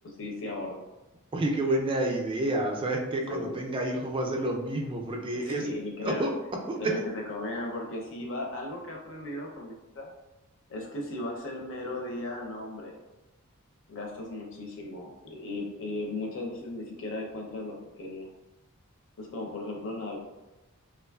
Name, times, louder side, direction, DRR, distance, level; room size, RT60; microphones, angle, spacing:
voice 1, 0.0-0.8 3.3-3.6 5.3-6.3 6.8-10.1 10.7-13.0 13.9-18.3 19.2-20.2, left 2 dB, 60° left, 0 dB, 0.6 m, -36 dB
voice 2, 1.3-5.7 6.0-6.3 6.7-6.9, right 1 dB, 25° right, 1 dB, 0.3 m, -29 dB
2.9 x 2.4 x 2.2 m, 1.0 s
head